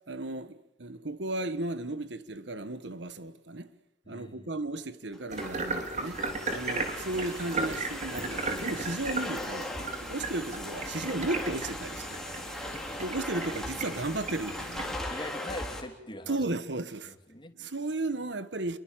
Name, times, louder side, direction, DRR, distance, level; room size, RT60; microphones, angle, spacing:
voice 1, 0.1-3.7 4.1-6.2 6.5-9.7 10.0-12.3 13.0-15.0 16.3-17.1 17.5-18.8, right 2 dB, 75° right, 1.4 m, -34 dB
voice 2, 4.0-4.5 8.6-8.8 12.6-13.0 15.1-16.4 17.0-17.6, left 1 dB, 25° left, 2.9 m, -43 dB
Domestic sounds home sounds, 5.1-15.8, left 1 dB, 5° left, 3.8 m, -39 dB
sound 1, 5.3-15.0, right 3 dB, 45° right, 3.9 m, -36 dB
29.0 x 22.5 x 7.5 m
head